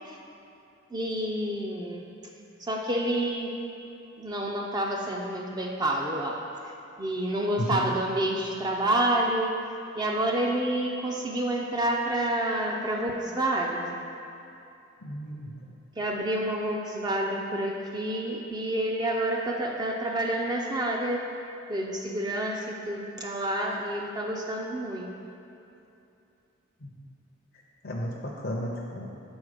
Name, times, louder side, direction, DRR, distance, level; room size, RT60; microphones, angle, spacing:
voice 1, 0.9-2.1 2.6-3.6 4.2-6.4 7.0-9.6 9.9-14.0 16.0-21.2 21.7-25.1, right 1 dB, 20° right, 0 dB, 0.4 m, -28 dB
voice 2, 15.0-15.6 26.8-27.0 27.8-29.1, equal, 50° left, -3 dB, 0.6 m, -33 dB
6.2 x 4.3 x 4.9 m, 2.8 s
head